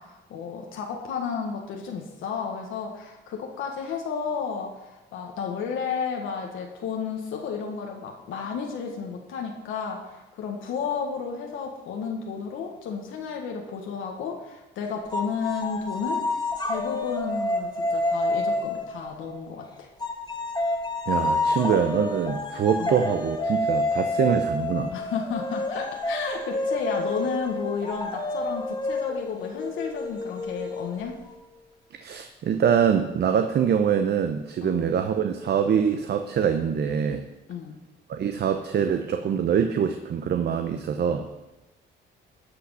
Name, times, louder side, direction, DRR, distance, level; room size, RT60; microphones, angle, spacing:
voice 1, 0.0-16.2 16.6-19.9 22.8-23.0 24.9-31.2 34.6-34.9 37.5-37.8, left 6 dB, 85° left, 1 dB, 1.5 m, -32 dB
sound 1, 15.1-19.5 20.0-31.4, left 2 dB, 20° left, 1.7 m, -29 dB
voice 2, 21.1-24.9 32.0-37.3 38.1-41.3, right 7 dB, 55° right, 7 dB, 0.8 m, -24 dB
12.5 x 5.9 x 5.7 m, 1.0 s
cardioid pair, 90°, 20 cm